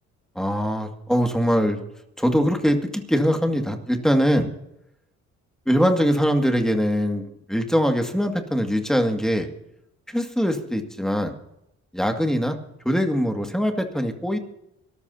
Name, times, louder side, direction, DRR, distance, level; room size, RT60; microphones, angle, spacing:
voice 1, 0.4-1.8 2.2-4.5 5.7-7.2 7.5-9.5 10.1-11.4 11.9-12.6 12.9-14.4, equal, ahead, 4 dB, 2.1 m, -22 dB
25.0 x 13.5 x 2.8 m, 0.82 s
cardioid pair, 90°, 30 cm